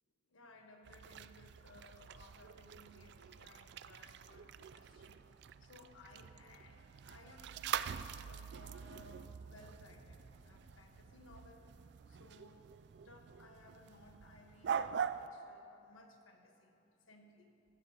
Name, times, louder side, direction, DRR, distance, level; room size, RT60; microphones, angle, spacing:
voice 1, 0.3-5.2 5.6-7.6 8.1-11.6 12.1-12.6 13.0-14.8 15.1-16.8 17.1-17.5, left 2 dB, 90° left, 3 dB, 1.3 m, -60 dB
sound 1, 0.8-15.3, right 7 dB, 55° right, 0.3 m, -45 dB
sound 2, 8.9-14.4 14.8-15.0 15.4-15.5, equal, 25° right, 3.2 m, -67 dB
14.5 x 14.5 x 2.9 m, 2.7 s
head